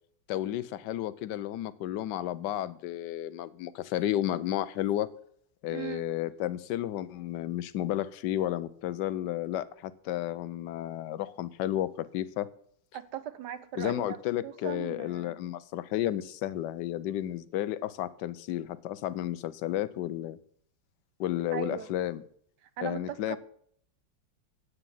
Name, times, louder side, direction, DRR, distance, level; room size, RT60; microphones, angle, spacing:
voice 1, 0.3-5.1 5.6-12.5 13.8-20.4 21.2-22.2 22.8-23.4, left 13 dB, 70° left, 16 dB, 1.2 m, -32 dB
voice 2, 5.7-6.0 12.9-14.2 14.4-15.4 21.5-21.9 22.6-23.4, right 10 dB, 70° right, 13 dB, 1.2 m, -38 dB
9.9 x 8.3 x 5.5 m, 0.62 s
omnidirectional pair, 2.1 m